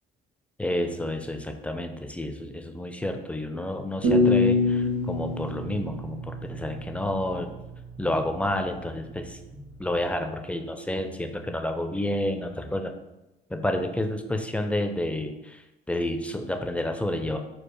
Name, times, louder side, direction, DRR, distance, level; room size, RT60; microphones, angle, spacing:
voice 1, 0.6-7.5 8.0-12.9 13.5-15.6 15.9-17.4, left 1 dB, 5° left, 5 dB, 0.4 m, -30 dB
sound 1, 4.0-7.0, left 2 dB, 80° right, 1.6 m, -24 dB
4.5 x 2.4 x 4.8 m, 0.97 s
cardioid pair, 110°, 17 cm